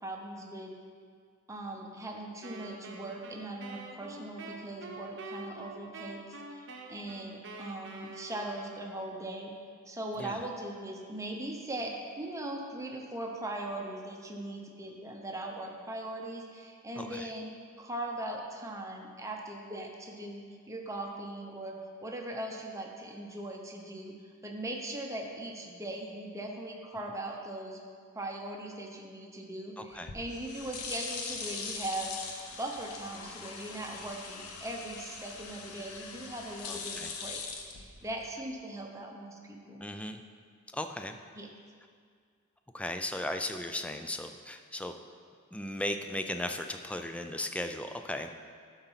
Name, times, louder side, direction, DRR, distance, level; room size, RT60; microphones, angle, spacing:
voice 1, 0.0-0.7 1.5-9.5 9.9-24.1 24.4-27.8 28.1-32.2 32.6-37.4 37.7-39.9 41.3-41.5, right 1 dB, 15° right, 1 dB, 0.8 m, -40 dB
Wind instrument woodwind instrument, 2.4-9.3, right 2 dB, 55° right, 0.8 m, -46 dB
voice 2, 17.0-17.3 29.8-30.1 36.6-37.1 39.8-40.2 40.7-41.2 42.7-44.9 45.5-48.3, left 1 dB, 5° left, 6 dB, 0.3 m, -36 dB
sound 1, 29.9-38.4, left 5 dB, 90° left, 0.9 m, -41 dB
11.0 x 4.0 x 5.7 m, 2.1 s
head